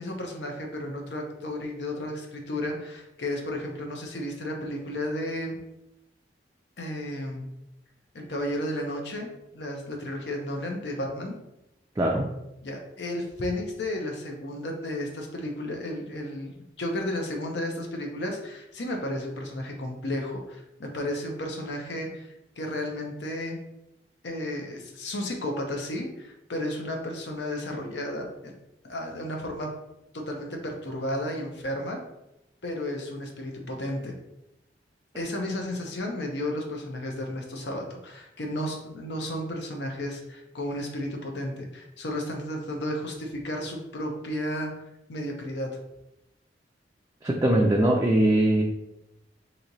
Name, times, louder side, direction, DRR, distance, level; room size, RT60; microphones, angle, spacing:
voice 1, 0.0-5.6 6.8-7.5 8.1-11.4 12.6-22.3 22.6-23.6 24.2-28.5 28.8-29.7 30.1-32.0 32.6-34.1 35.2-44.7 45.1-45.7, left 1 dB, 70° left, 2 dB, 0.7 m, -33 dB
voice 2, 47.2-48.6, right 1 dB, 20° right, -1 dB, 0.3 m, -21 dB
3.1 x 2.7 x 3.9 m, 0.88 s
head